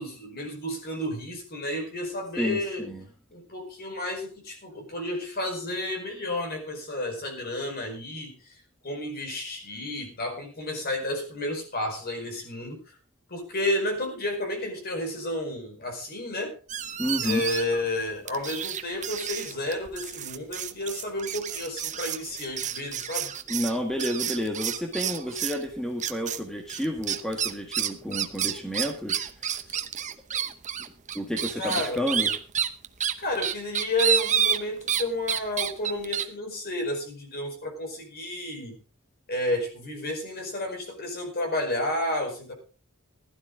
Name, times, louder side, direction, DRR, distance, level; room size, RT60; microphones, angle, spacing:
voice 1, 0.0-2.9 3.3-13.0 13.3-16.5 17.2-23.3 29.7-29.8 31.6-32.0 33.2-38.7 39.3-42.5, left 1 dB, 45° left, 3 dB, 4.9 m, -31 dB
voice 2, 2.4-3.1 17.0-17.4 23.5-29.5 31.1-32.3, equal, 5° left, 2 dB, 1.6 m, -30 dB
sound 1, 16.7-17.8 18.3-25.6 26.0-26.4 26.7-35.0 35.3-36.2, right 9 dB, 35° right, 0.9 m, -29 dB
15.5 x 12.0 x 3.8 m, 0.37 s
head